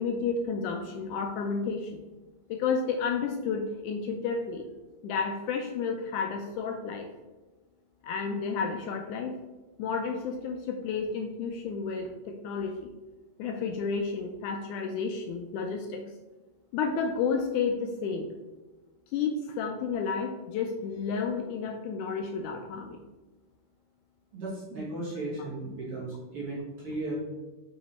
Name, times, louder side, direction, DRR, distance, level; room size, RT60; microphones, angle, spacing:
voice 1, 0.0-2.0 2.5-4.7 5.0-7.1 8.0-9.4 9.8-12.9 13.4-16.0 16.7-18.3 19.1-23.0 25.4-25.5, left 5 dB, 80° left, 4 dB, 1.9 m, -31 dB
voice 2, 24.3-27.2, right 2 dB, 50° right, -5 dB, 2.1 m, -35 dB
5.9 x 4.9 x 4.2 m, 1.2 s
omnidirectional pair, 3.8 m